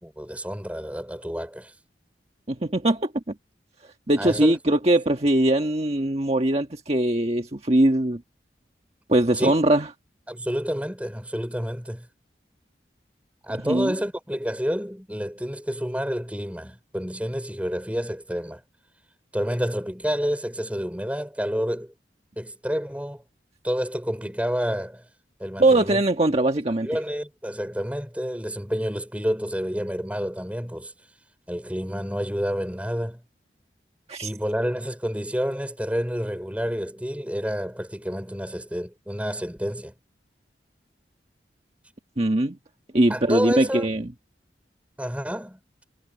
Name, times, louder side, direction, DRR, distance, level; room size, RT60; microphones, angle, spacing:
voice 1, 0.0-1.7 4.2-4.5 9.4-9.5 10.3-12.1 13.4-18.6 19.3-21.9 22.4-23.2 23.6-25.0 25.4-26.0 26.8-30.9 31.5-33.2 34.2-39.9 43.1-43.9 45.0-45.6, equal, 10° right, 5.3 m, -29 dB
voice 2, 2.5-3.1 4.1-8.2 9.1-9.9 13.6-13.9 25.6-26.9 34.1-34.3 42.2-42.5 42.9-44.0, right 1 dB, 35° right, 1.6 m, -21 dB
head